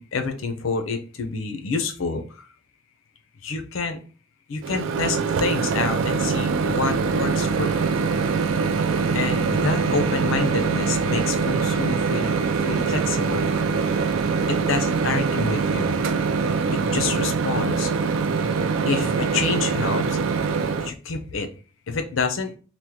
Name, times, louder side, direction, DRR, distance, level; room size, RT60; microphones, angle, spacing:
voice 1, 0.0-2.4 3.4-4.0 4.5-7.9 9.1-12.4 12.6-13.5 14.5-16.0 16.7-17.9 18.9-20.2 20.8-21.5 21.9-22.5, left 4 dB, 70° left, 7 dB, 0.5 m, -28 dB
Microwave oven, 4.6-20.9, right 5 dB, 70° right, 0.3 m, -23 dB
3.0 x 2.1 x 3.4 m, 0.38 s
head